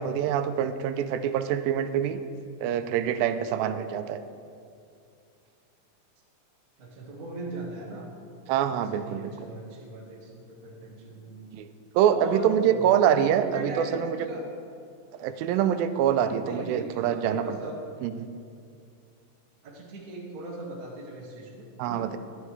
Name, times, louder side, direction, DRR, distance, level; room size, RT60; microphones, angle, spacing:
voice 1, 0.0-2.2 2.6-4.2 8.5-9.3 11.5-11.7 12.0-14.3 15.2-17.6 18.0-18.3 21.8-22.2, right 9 dB, 90° right, 10 dB, 2.3 m, -25 dB
voice 2, 6.8-8.1 8.9-11.5 12.1-14.4 16.4-17.8 19.6-22.0, right 2 dB, 50° right, -2 dB, 1.1 m, -39 dB
13.0 x 10.5 x 3.2 m, 2.4 s
omnidirectional pair, 4.0 m